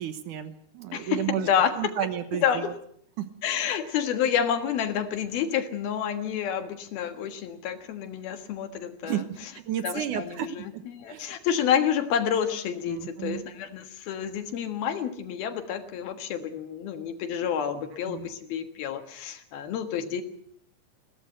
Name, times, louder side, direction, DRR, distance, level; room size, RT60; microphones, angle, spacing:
voice 1, 0.0-1.5 1.8-2.7 3.2-3.3 9.0-10.5 10.7-10.8 11.1-11.3 12.9-13.4 18.1-18.3, right 11 dB, 65° right, 11 dB, 2.2 m, -32 dB
voice 2, 0.9-1.9 2.4-2.7 3.4-9.2 9.8-20.2, left 8 dB, 70° left, 7 dB, 3.3 m, -29 dB
22.0 x 17.0 x 7.9 m, 0.66 s
omnidirectional pair, 4.7 m